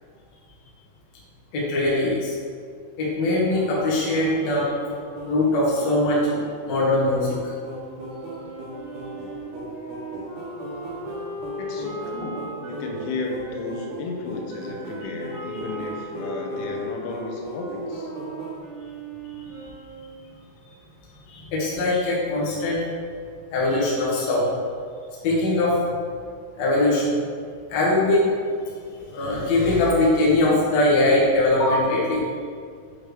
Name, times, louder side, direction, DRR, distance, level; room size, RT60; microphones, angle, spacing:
voice 1, 1.5-2.3 3.0-4.7 5.2-6.3 6.6-7.5 15.5-15.6 21.3-22.9 23.5-24.5 25.2-25.8 26.6-27.2 27.7-28.3 28.9-32.3, left 2 dB, 65° left, -6 dB, 1.7 m, -21 dB
sound 1, 3.5-18.6, right 1 dB, 85° right, 1.5 m, -38 dB
Wind instrument woodwind instrument, 7.9-13.8 14.5-20.3, right 1 dB, 70° right, 3.6 m, -37 dB
voice 2, 11.6-18.1, left 3 dB, 85° left, 0 dB, 3.2 m, -33 dB
8.7 x 3.3 x 5.0 m, 2.2 s
omnidirectional pair, 5.7 m